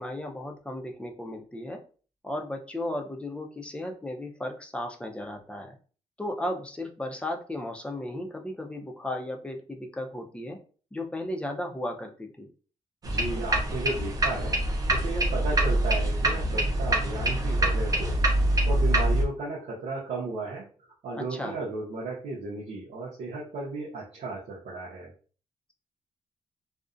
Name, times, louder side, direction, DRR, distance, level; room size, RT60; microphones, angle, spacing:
voice 1, 0.0-1.8 2.2-5.8 6.2-10.6 10.9-12.5 21.1-21.6, left 1 dB, 10° left, 3 dB, 0.5 m, -35 dB
sound 1, 13.0-19.2, right 1 dB, 30° right, 0.6 m, -25 dB
voice 2, 13.0-18.2 18.4-20.7 21.0-25.1, right 3 dB, 90° right, -4 dB, 0.6 m, -34 dB
2.5 x 2.1 x 2.4 m, 0.39 s
cardioid pair, 90°, 11 cm